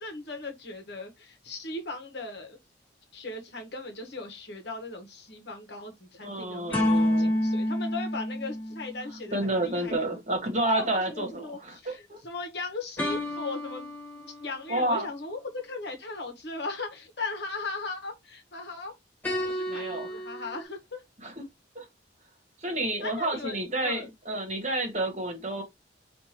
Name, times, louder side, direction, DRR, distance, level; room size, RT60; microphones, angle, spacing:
voice 1, 0.0-2.6 3.1-9.9 10.6-18.9 19.3-21.0 23.0-24.1, left 3 dB, 60° left, 1.1 m, -38 dB
voice 2, 6.2-7.3 9.3-12.2 14.7-15.1 19.7-20.1 21.2-21.4 21.7-21.8 22.6-25.6, right 2 dB, 40° right, 1.3 m, -30 dB
sound 1, 6.7-9.3 13.0-14.8 19.2-20.6, left 1 dB, 10° left, 1.5 m, -29 dB
5.4 x 2.6 x 2.9 m
head